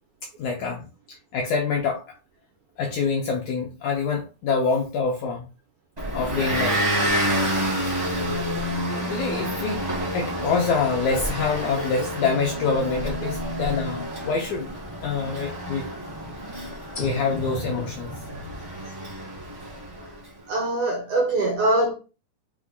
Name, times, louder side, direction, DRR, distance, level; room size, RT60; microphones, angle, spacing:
voice 1, 0.4-0.8 1.3-2.0 2.8-5.5 6.1-6.9 8.9-9.8 10.1-14.7 15.0-15.9 17.0-18.1, left 5 dB, 80° left, 1.7 m, -26 dB
Motor vehicle (road) / Engine, 6.0-20.2, equal, 50° right, 0.4 m, -29 dB
sound 1, 10.3-14.3 14.7-14.8 16.9-18.7, right 1 dB, 60° left, 0.8 m, -39 dB
voice 2, 20.5-21.9, right 2 dB, 80° right, 1.7 m, -23 dB
6.1 x 2.2 x 3.5 m
omnidirectional pair, 4.1 m